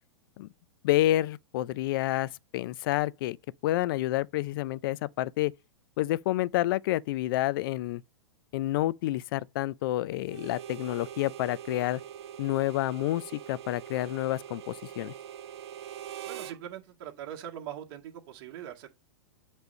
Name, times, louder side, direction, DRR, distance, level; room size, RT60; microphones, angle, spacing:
voice 1, 0.8-3.4 3.6-5.5 6.0-8.0 8.5-12.0 12.4-15.1, left 15 dB, 55° left, 0.5 m, -29 dB
Harmonica, 10.2-16.6, right 10 dB, 70° right, 0.7 m, -43 dB
voice 2, 16.2-18.9, right 10 dB, 50° right, 1.8 m, -41 dB
8.2 x 3.3 x 5.3 m
hypercardioid pair, 115°, 14 cm